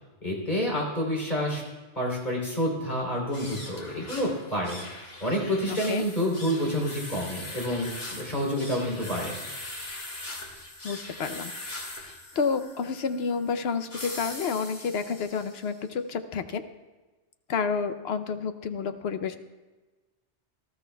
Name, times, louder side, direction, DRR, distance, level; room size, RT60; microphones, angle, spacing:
voice 1, 0.2-1.6 2.0-4.8 5.2-9.4, equal, 40° left, -2 dB, 3.5 m, -28 dB
sound 1, 3.2-15.7, left 2 dB, 80° left, 2.5 m, -41 dB
voice 2, 5.7-6.0 10.8-16.6 17.5-19.4, left 5 dB, 65° left, 9 dB, 0.9 m, -30 dB
19.0 x 13.0 x 2.3 m, 1.2 s
omnidirectional pair, 1.2 m